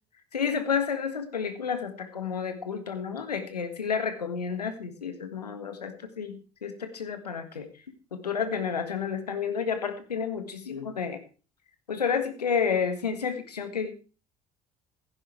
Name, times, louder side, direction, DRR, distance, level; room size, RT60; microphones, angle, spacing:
voice 1, 0.3-7.7 8.1-11.2 11.9-13.9, left 6 dB, 85° left, 9 dB, 1.7 m, -30 dB
15.5 x 9.8 x 4.5 m, 0.36 s
figure-of-eight pair, 55°, 20 cm